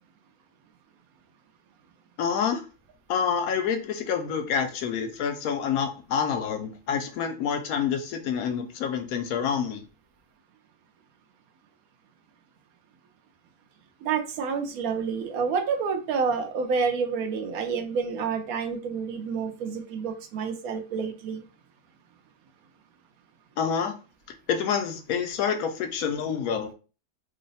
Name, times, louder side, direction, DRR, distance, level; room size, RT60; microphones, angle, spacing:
voice 1, 2.2-2.6 3.1-9.8 23.6-23.9 24.5-26.7, left 7 dB, 75° left, 6 dB, 1.0 m, -27 dB
voice 2, 14.0-21.4, right 5 dB, 75° right, 6 dB, 1.0 m, -28 dB
3.1 x 2.0 x 4.0 m, 0.34 s
omnidirectional pair, 1.6 m